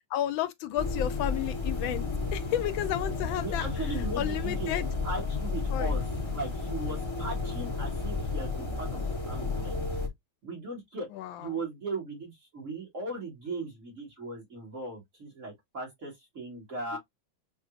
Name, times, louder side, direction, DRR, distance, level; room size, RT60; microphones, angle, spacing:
voice 1, 0.1-3.7 4.2-4.9 5.7-6.0 11.2-11.5 16.9-17.0, left 11 dB, 75° left, 1.3 m, -32 dB
sound 1, 0.8-10.1, left 4 dB, 20° left, 0.8 m, -32 dB
voice 2, 3.4-4.7 5.0-9.8 10.4-11.1 11.4-17.0, right 3 dB, 40° right, 2.1 m, -38 dB
6.1 x 2.6 x 2.4 m
omnidirectional pair, 2.2 m